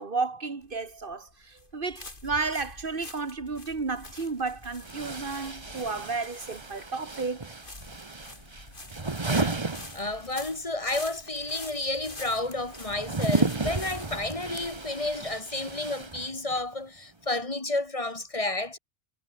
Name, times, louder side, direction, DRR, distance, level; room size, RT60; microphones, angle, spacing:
voice 1, 0.0-7.5, right 4 dB, 50° right, 1.8 m, -32 dB
sound 1, 0.6-16.1, left 2 dB, 50° left, 4.1 m, -47 dB
sound 2, 3.9-4.0 4.8-10.6 10.9-16.7, right 3 dB, 25° right, 1.2 m, -33 dB
voice 2, 9.3-9.7 9.9-18.8, left 2 dB, 30° left, 1.9 m, -31 dB
omnidirectional pair, 1.2 m